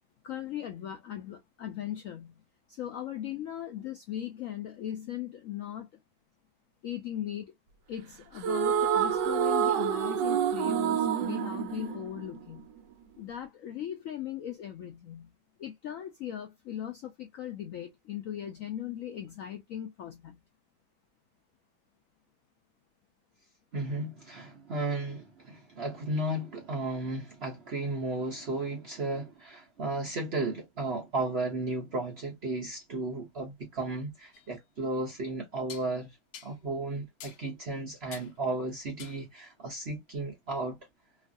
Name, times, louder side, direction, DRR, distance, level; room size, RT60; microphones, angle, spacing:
voice 1, 0.2-2.4 2.7-5.9 6.8-7.5 7.9-12.7 13.2-15.3 15.6-20.4, left 11 dB, 85° left, 0.7 m, -38 dB
sound 1, 8.4-12.8, right 8 dB, 75° right, 1.1 m, -28 dB
voice 2, 23.7-36.2 36.4-40.8, right 2 dB, 55° right, 0.7 m, -34 dB
sound 2, 34.3-34.5 35.7-35.9 36.3-36.6 37.2-37.4 38.1-38.4 39.0-39.3, left 8 dB, 70° left, 1.1 m, -47 dB
3.1 x 2.4 x 2.5 m
omnidirectional pair, 2.1 m